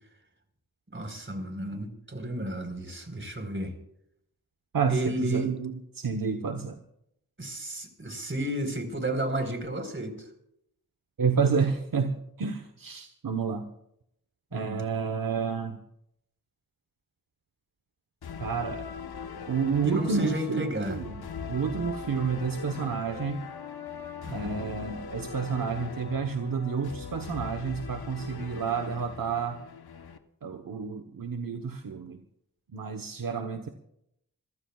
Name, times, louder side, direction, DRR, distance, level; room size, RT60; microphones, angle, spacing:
voice 1, 0.9-3.7 4.9-5.5 7.4-10.1 14.5-14.8 19.8-21.0 24.2-24.5, right 1 dB, 30° right, 5 dB, 4.4 m, -32 dB
voice 2, 4.7-6.8 11.2-13.7 14.5-15.8 18.4-18.8 19.5-21.2 21.5-23.5 24.3-29.6 30.4-32.2 32.7-33.7, right 5 dB, 65° right, 6 dB, 1.2 m, -30 dB
sound 1, 18.2-30.2, left 6 dB, 85° left, 1.2 m, -40 dB
26.5 x 15.5 x 2.4 m, 0.75 s
cardioid pair, 50°, 37 cm